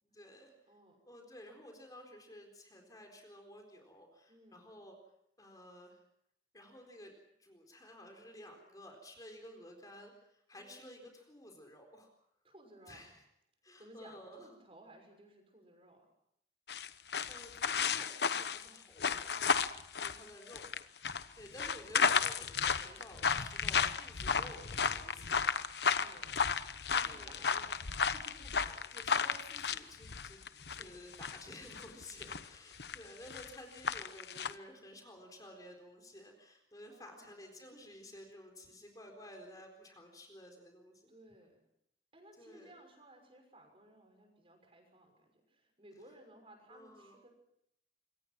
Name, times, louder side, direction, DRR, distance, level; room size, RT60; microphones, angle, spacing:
voice 1, 0.0-0.5 1.1-5.0 5.4-6.0 6.5-7.1 7.4-12.1 12.9-13.2 13.6-14.5 16.9-17.0 17.3-19.2 20.0-20.7 21.0-25.6 27.0-27.5 28.9-30.4 30.7-41.1 42.4-42.8 46.7-47.2, left 1 dB, 20° left, 3 dB, 4.1 m, -53 dB
voice 2, 0.7-1.0 4.3-4.7 10.5-10.8 12.4-13.1 13.8-16.1 18.6-18.8 19.3-19.7 25.7-26.5 26.9-29.0 30.8-31.0 36.9-37.4 41.1-41.6 42.1-47.3, right 1 dB, 30° right, 4 dB, 6.2 m, -59 dB
sound 1, 16.7-30.8 31.1-32.5 32.7-33.0 33.3-33.5 33.8-34.5, left 6 dB, 70° left, 1.0 m, -33 dB
26.5 x 24.0 x 6.1 m, 0.76 s
head